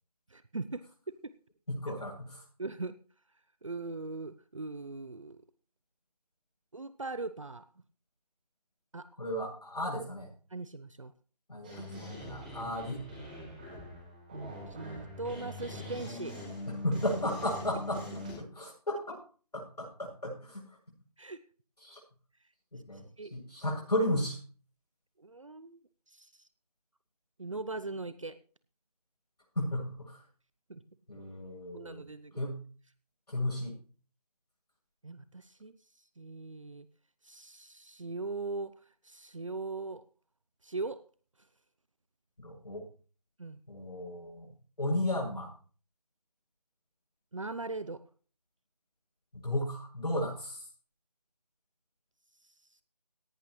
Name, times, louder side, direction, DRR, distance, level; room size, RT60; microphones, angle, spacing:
voice 1, 0.3-1.2 2.6-3.0 3.6-5.4 6.7-7.7 8.9-9.1 10.5-11.1 14.3-16.4 21.2-21.4 23.2-23.3 25.2-25.8 26.1-26.5 27.4-28.4 30.7-30.8 31.7-32.5 35.0-35.8 36.2-36.9 37.2-40.1 40.6-41.0 43.4-43.6 47.3-48.0, right 3 dB, 50° right, 14 dB, 0.8 m, -40 dB
voice 2, 1.7-2.4 9.2-10.3 11.5-13.1 16.7-18.0 18.4-19.2 19.5-20.8 21.8-22.0 22.7-24.4 29.5-30.2 31.1-32.0 32.4-32.6 33.3-33.7 42.4-42.8 43.7-44.5 44.8-45.5 49.3-50.7, left 1 dB, 75° left, -3 dB, 7.8 m, -34 dB
sound 1, 11.6-18.3, left 1 dB, 15° right, 5.1 m, -43 dB
17.5 x 11.5 x 3.2 m, 0.40 s
figure-of-eight pair, 175°, 21 cm